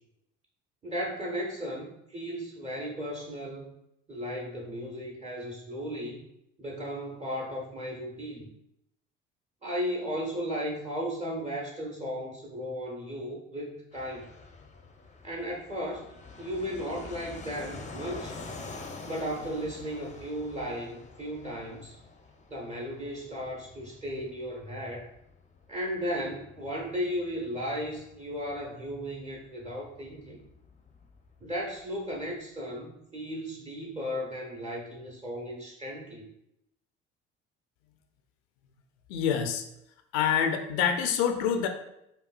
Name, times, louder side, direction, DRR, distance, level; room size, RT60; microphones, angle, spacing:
voice 1, 0.8-3.7 4.1-6.2 6.6-8.5 9.6-14.3 15.2-16.0 16.4-18.4 19.0-22.0 22.5-25.1 25.7-30.4 31.4-36.3, equal, 20° right, -1 dB, 0.9 m, -35 dB
Fixed-wing aircraft airplane, 13.9-32.3, left 3 dB, 20° left, 0.6 m, -47 dB
voice 2, 39.1-39.6 40.1-41.7, left 8 dB, 75° left, 6 dB, 0.5 m, -26 dB
5.2 x 2.3 x 2.4 m, 0.82 s
hypercardioid pair, 55°, 33 cm